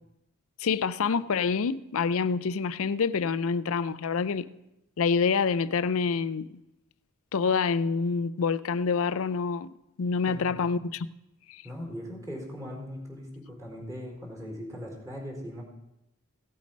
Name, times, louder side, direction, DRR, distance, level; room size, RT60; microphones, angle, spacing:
voice 1, 0.6-4.5 5.0-6.6 7.3-9.7 10.0-11.1 11.5-11.6, left 5 dB, 65° left, 0.5 m, -27 dB
voice 2, 10.3-10.8 11.6-15.6, equal, 15° right, 4.2 m, -40 dB
16.5 x 8.4 x 5.3 m
head